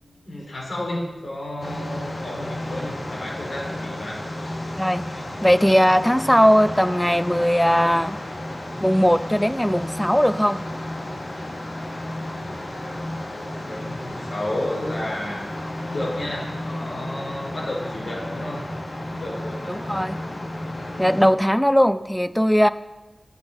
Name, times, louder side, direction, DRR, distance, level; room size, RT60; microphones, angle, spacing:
voice 1, 0.0-4.2 12.7-15.4 15.9-18.6 19.2-19.8, left 1 dB, 80° left, -4 dB, 5.1 m, -32 dB
sound 1, 1.6-21.3, left 1 dB, 60° left, 2.8 m, -32 dB
voice 2, 5.4-8.2 8.8-10.6 19.7-20.2 21.0-22.7, equal, 5° left, 14 dB, 0.5 m, -19 dB
12.0 x 8.1 x 7.0 m, 1.1 s
wide cardioid pair, 75°, 0 cm